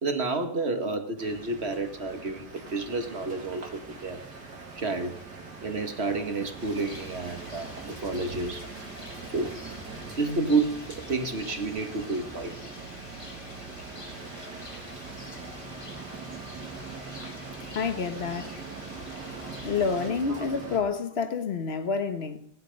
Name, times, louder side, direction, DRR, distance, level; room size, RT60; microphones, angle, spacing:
voice 1, 0.0-4.2 4.8-5.2 5.6-8.6 9.3-9.6 10.2-10.7 11.1-12.7, right 3 dB, 35° right, 1.6 m, -30 dB
sound 1, 1.2-20.8, right 3 dB, 60° right, 2.9 m, -42 dB
Rain, 6.6-20.1, left 2 dB, 20° left, 1.4 m, -47 dB
voice 2, 17.7-18.5 19.6-22.4, left 5 dB, 40° left, 1.1 m, -29 dB
17.5 x 11.0 x 5.3 m
omnidirectional pair, 2.0 m